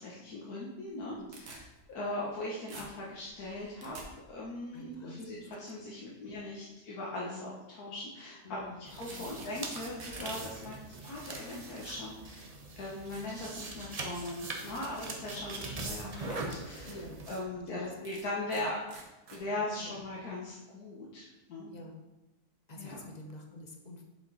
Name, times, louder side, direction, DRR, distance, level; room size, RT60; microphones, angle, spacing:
voice 1, 0.0-4.0 4.3-12.5 12.7-17.0 17.3-18.8 19.3-21.7 22.7-23.0, left 2 dB, 75° left, -4 dB, 1.5 m, -39 dB
sound 1, 0.8-2.4 2.7-4.1 9.1-9.5 9.8-10.8 11.7-11.8 12.4-12.5 13.1-13.3 13.8-14.2 15.3-15.4 15.9-16.0 16.3-16.5 16.9-17.0 18.0-18.6 18.9-19.4, right 3 dB, 90° right, 1.7 m, -50 dB
voice 2, 4.7-5.6 7.3-7.5 8.4-9.4 16.8-17.2 17.7-17.9 18.6-18.7 19.5-19.9 21.7-22.1 22.7-24.0, left 1 dB, 35° left, 2 dB, 0.7 m, -48 dB
sound 2, 8.9-17.4, right 3 dB, 35° right, 0.6 m, -42 dB
7.2 x 5.2 x 4.1 m, 1.0 s
omnidirectional pair, 1.6 m